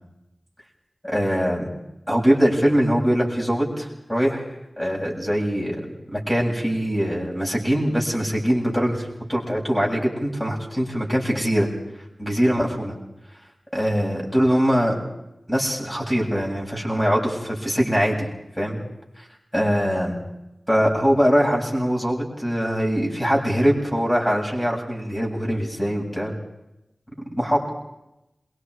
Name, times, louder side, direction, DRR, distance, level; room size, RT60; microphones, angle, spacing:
voice 1, 1.0-1.6 2.1-4.5 4.8-11.7 12.2-12.9 13.7-15.0 15.5-18.3 18.6-18.8 19.2-19.3 19.5-20.2 20.7-26.3 27.3-27.6, equal, 10° left, -2 dB, 7.8 m, -22 dB
27.5 x 23.5 x 5.0 m, 0.90 s
wide cardioid pair, 75°, 0 cm